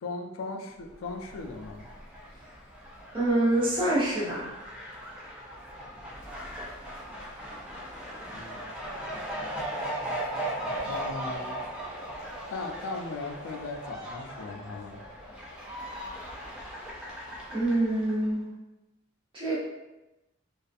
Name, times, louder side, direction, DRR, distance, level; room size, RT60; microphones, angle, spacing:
voice 1, 0.0-1.9 8.3-8.7 10.9-11.6 12.5-15.0, left 3 dB, 80° left, 3 dB, 0.3 m, -37 dB
Fowl, 0.9-18.3, right 1 dB, 5° right, 0.4 m, -38 dB
voice 2, 3.1-4.5 17.5-18.4 19.3-19.5, right 1 dB, 25° right, -10 dB, 0.9 m, -26 dB
2.4 x 2.4 x 2.5 m, 1.0 s
head